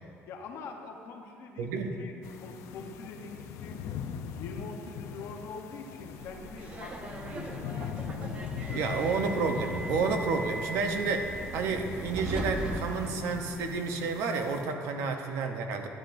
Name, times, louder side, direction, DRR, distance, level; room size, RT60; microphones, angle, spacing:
voice 1, 0.3-1.7 2.0-3.8 4.3-8.1 8.7-9.0, left 4 dB, 60° left, 2 dB, 0.9 m, -44 dB
voice 2, 1.6-1.9 8.7-15.9, right 4 dB, 80° right, 5 dB, 0.8 m, -30 dB
sound 1, 2.2-14.6, left 7 dB, 85° left, 0.5 m, -41 dB
Subway metro underground, 6.2-13.8, right 1 dB, 25° right, 0.6 m, -39 dB
11.5 x 9.8 x 2.6 m, 2.6 s
cardioid pair, 180°, 5 cm